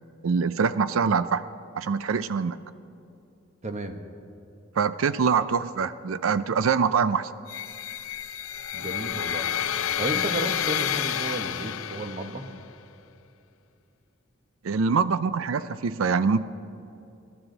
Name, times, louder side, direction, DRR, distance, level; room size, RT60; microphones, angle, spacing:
voice 1, 0.2-1.4 1.7-2.6 4.8-7.3 14.6-16.4, right 5 dB, 80° right, 14 dB, 0.5 m, -24 dB
voice 2, 3.6-4.0 8.7-9.5 10.0-12.5, right 1 dB, 35° right, 5 dB, 1.3 m, -32 dB
sound 1, 7.5-12.5, left 10 dB, 80° left, 0.5 m, -30 dB
29.5 x 12.0 x 4.0 m, 2.7 s
head